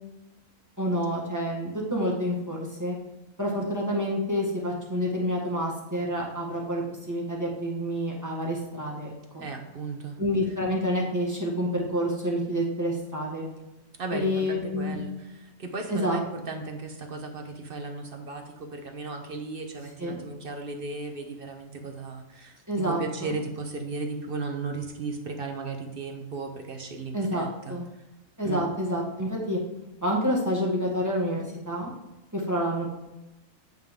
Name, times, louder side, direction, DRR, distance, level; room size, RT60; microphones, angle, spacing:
voice 1, 0.8-3.0 3.4-9.5 10.2-13.4 14.1-15.0 15.9-16.2 20.0-20.2 22.7-23.3 27.1-27.8 28.4-29.6 30.0-31.9 32.3-32.9, equal, 15° right, -2 dB, 1.6 m, -28 dB
voice 2, 9.4-10.2 14.0-28.0 28.4-28.6, right 3 dB, 45° right, 4 dB, 1.1 m, -36 dB
9.0 x 5.8 x 3.6 m, 0.97 s
omnidirectional pair, 1.4 m